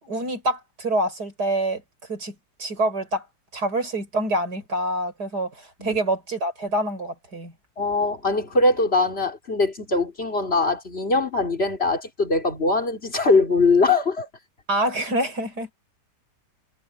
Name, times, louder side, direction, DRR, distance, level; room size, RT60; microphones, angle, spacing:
voice 1, 0.0-1.8 2.1-3.3 3.5-7.5 14.7-15.7, right 1 dB, 70° right, 5.8 m, -26 dB
voice 2, 7.8-14.3, left 3 dB, 35° left, 3.7 m, -22 dB
omnidirectional pair, 1.8 m